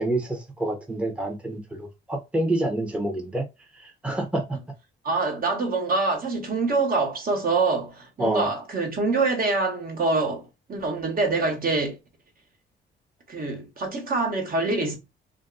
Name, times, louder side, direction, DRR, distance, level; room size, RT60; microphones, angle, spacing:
voice 1, 0.0-1.6 2.1-3.4 3.8-4.6 8.2-8.5, right 1 dB, 5° right, 0.8 m, -27 dB
voice 2, 5.0-12.0 13.3-15.0, right 3 dB, 45° right, 1.3 m, -25 dB
2.5 x 2.2 x 3.9 m
cardioid pair, 90°, 20 cm